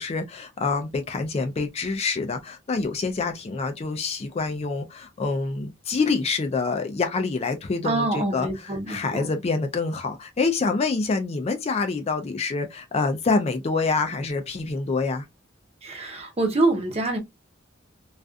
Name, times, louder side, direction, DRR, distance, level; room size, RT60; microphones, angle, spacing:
voice 1, 0.0-15.3, left 4 dB, 30° left, 0.3 m, -26 dB
voice 2, 7.8-9.3 15.8-17.2, right 2 dB, 30° right, 0.7 m, -25 dB
2.4 x 2.3 x 2.4 m
head